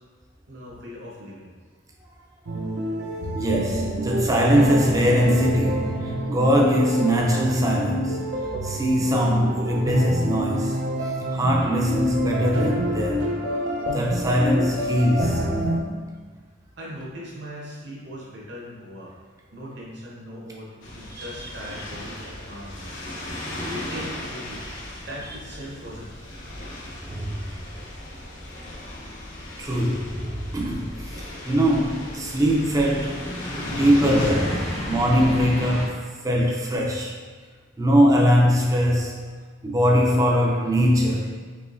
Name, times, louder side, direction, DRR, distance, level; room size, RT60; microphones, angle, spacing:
voice 1, 0.5-1.5 3.0-3.7 16.8-19.1 19.5-22.9 23.3-24.6 25.1-26.1, equal, 65° right, -5 dB, 1.1 m, -39 dB
sound 1, 2.5-15.8, equal, 80° right, 0.6 m, -27 dB
voice 2, 3.3-8.2 8.6-13.3 13.9-15.4 15.9-16.0 21.1-21.2 27.0-27.4 29.6-33.3 33.6-37.1 37.8-39.2 39.6-41.4, equal, 15° right, -1 dB, 0.5 m, -22 dB
sound 2, 20.8-34.3, left 1 dB, 75° left, 0.8 m, -37 dB
sound 3, 28.8-35.9, equal, 35° left, 0.6 m, -33 dB
4.8 x 3.1 x 2.6 m, 1.5 s
head